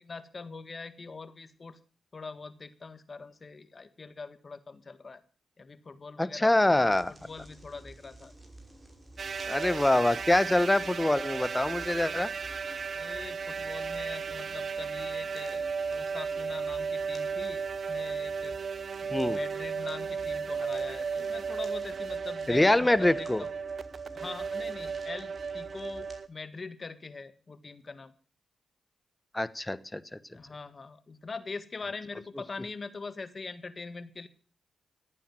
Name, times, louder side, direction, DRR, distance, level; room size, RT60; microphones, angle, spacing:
voice 1, 0.0-1.8 2.1-5.2 5.6-8.3 12.9-18.6 19.0-23.5 24.1-28.1 30.3-34.3, left 4 dB, 45° left, 12 dB, 1.7 m, -43 dB
voice 2, 6.2-7.1 9.5-12.3 19.1-19.4 22.5-23.4 29.3-30.2, left 1 dB, 15° left, 17 dB, 1.1 m, -25 dB
sound 1, 6.7-26.2, right 1 dB, 25° right, 5.6 m, -52 dB
sound 2, 9.2-26.3, right 5 dB, 60° right, 0.8 m, -35 dB
14.5 x 9.2 x 7.7 m, 0.42 s
supercardioid pair, 40°, 0 cm